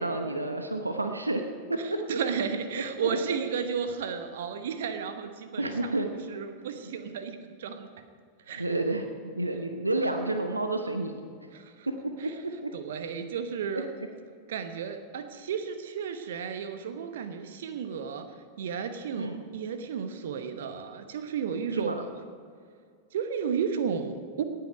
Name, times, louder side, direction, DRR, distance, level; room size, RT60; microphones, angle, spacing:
voice 1, 0.0-2.2 2.7-3.4 5.6-6.1 8.5-11.5 11.9-12.0 12.2-12.3 12.6-12.7 13.7-13.8 19.2-19.4 21.7-22.0, right 2 dB, 80° right, 6 dB, 0.8 m, -30 dB
voice 2, 2.1-8.1 8.5-8.6 11.5-11.9 12.2-12.3 12.7-13.9 14.5-18.3 18.6-22.1 23.1-24.4, right 6 dB, 60° right, 9 dB, 1.0 m, -33 dB
18.0 x 8.7 x 5.2 m, 2.1 s
figure-of-eight pair, 90°, 0 cm